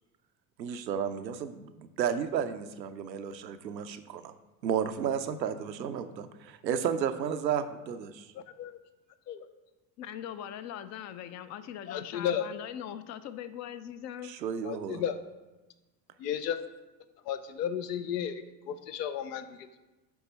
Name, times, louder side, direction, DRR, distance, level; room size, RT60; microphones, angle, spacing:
voice 1, 0.6-4.3 4.6-8.3 14.2-15.0, right 8 dB, 90° right, 9 dB, 0.6 m, -32 dB
voice 2, 8.3-8.8 9.3-9.5 11.9-12.5 14.6-15.2 16.2-16.6 17.3-19.8, left 9 dB, 75° left, 11 dB, 0.7 m, -34 dB
voice 3, 10.0-14.3, left 10 dB, 35° left, 12 dB, 0.4 m, -41 dB
7.0 x 4.8 x 4.1 m, 1.1 s
figure-of-eight pair, 70°, 50 cm